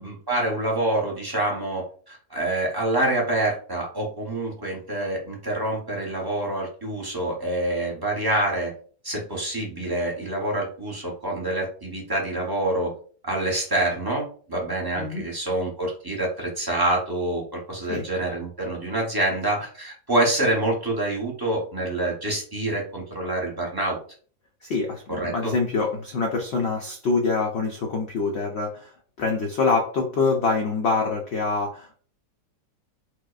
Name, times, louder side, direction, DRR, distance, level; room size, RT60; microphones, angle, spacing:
voice 1, 0.0-8.7 9.0-12.9 13.2-24.0 25.1-25.5, right 1 dB, 25° right, -2 dB, 0.5 m, -26 dB
voice 2, 15.0-15.3 17.9-18.1 24.6-32.0, left 4 dB, 80° left, 1 dB, 0.5 m, -25 dB
4.6 x 2.1 x 2.3 m, 0.43 s
omnidirectional pair, 1.7 m